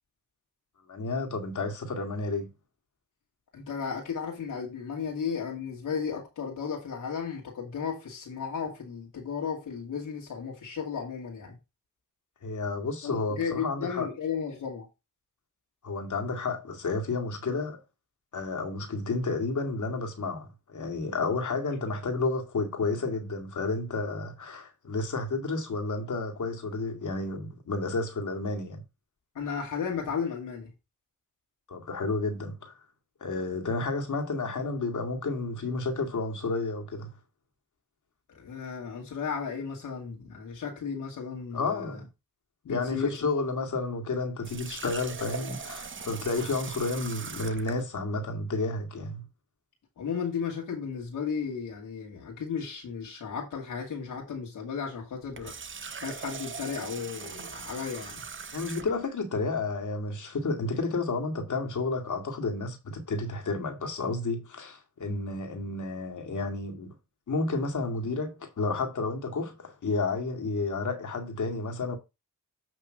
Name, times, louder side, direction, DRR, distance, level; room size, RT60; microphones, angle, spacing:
voice 1, 0.9-2.5 12.4-14.1 15.8-17.8 18.3-28.8 31.7-32.7 33.2-37.1 41.5-42.0 42.7-49.2 58.5-66.9 67.3-72.0, left 3 dB, 65° left, 2.1 m, -31 dB
voice 2, 3.5-11.6 13.0-14.9 29.3-30.7 38.3-42.0 42.6-43.2 50.0-55.5 56.0-58.2, left 6 dB, 85° left, 2.3 m, -34 dB
Water tap faucet, 44.4-47.8 55.2-59.1, right 6 dB, 40° right, 0.8 m, -40 dB
8.2 x 3.1 x 6.3 m
cardioid pair, 50°, 32 cm